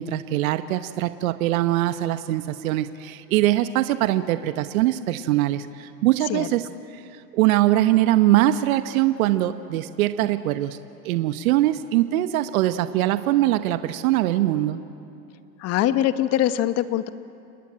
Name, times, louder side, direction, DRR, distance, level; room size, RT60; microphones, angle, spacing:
voice 1, 0.0-6.7 6.9-7.0 7.3-10.8 11.0-14.8, right 14 dB, 55° right, 11 dB, 1.1 m, -22 dB
voice 2, 15.6-17.1, left 12 dB, 30° left, 12 dB, 1.1 m, -22 dB
30.0 x 20.0 x 8.9 m, 2.6 s
hypercardioid pair, 120°, 49 cm